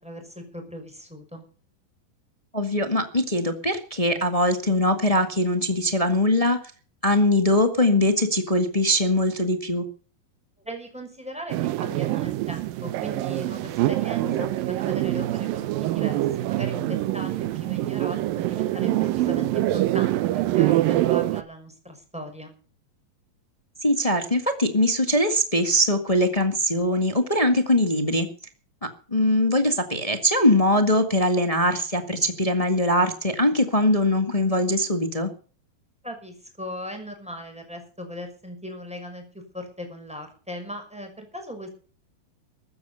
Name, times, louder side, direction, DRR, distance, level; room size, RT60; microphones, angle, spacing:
voice 1, 0.0-1.4 10.6-14.3 14.7-22.5 36.0-39.2 39.5-41.7, left 1 dB, ahead, 4 dB, 5.6 m, -38 dB
voice 2, 2.5-6.6 7.0-9.8 14.2-14.5 23.8-28.3 28.8-35.3, left 1 dB, 20° left, 7 dB, 0.8 m, -22 dB
sound 1, 11.5-21.4, right 16 dB, 80° right, 2.5 m, -25 dB
15.0 x 12.5 x 5.7 m, 0.40 s
omnidirectional pair, 4.1 m